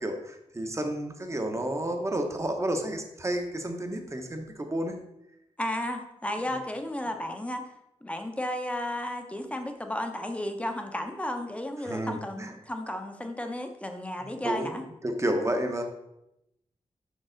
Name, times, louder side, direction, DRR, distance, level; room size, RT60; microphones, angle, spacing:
voice 1, 0.0-4.9 11.8-12.5 14.4-14.7 15.0-15.8, right 1 dB, 25° right, 4 dB, 0.9 m, -31 dB
voice 2, 5.6-7.6 8.0-14.8, left 1 dB, 10° left, 5 dB, 0.7 m, -33 dB
6.3 x 6.0 x 3.9 m, 0.85 s
wide cardioid pair, 150°, 12 cm